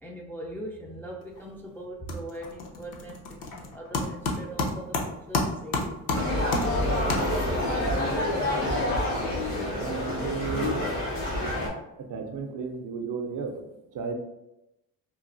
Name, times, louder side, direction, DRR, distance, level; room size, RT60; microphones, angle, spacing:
voice 1, 0.0-6.8, right 1 dB, 5° left, -2 dB, 0.3 m, -41 dB
sound 1, 1.2-1.6 1.8-7.7, left 3 dB, 60° left, 0.7 m, -31 dB
sound 2, 6.1-11.7, left 1 dB, 90° left, 1.0 m, -27 dB
voice 2, 9.5-10.9 12.0-14.1, right 5 dB, 55° right, 3 dB, 0.6 m, -34 dB
3.1 x 2.3 x 2.5 m, 0.90 s
supercardioid pair, 80°, 38 cm